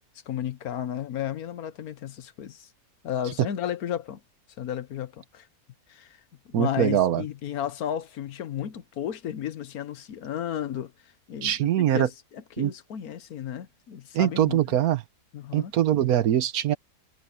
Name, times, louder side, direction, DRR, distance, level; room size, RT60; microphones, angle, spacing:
voice 1, 0.3-2.7 3.0-4.2 4.6-5.5 5.9-6.2 6.5-10.9 11.3-14.8 15.3-15.7, left 10 dB, 75° left, 1.4 m, -33 dB
voice 2, 6.5-7.2 11.4-12.1 12.6-12.7 14.1-15.0 15.5-16.8, right 11 dB, 70° right, 1.3 m, -22 dB
omnidirectional pair, 1.6 m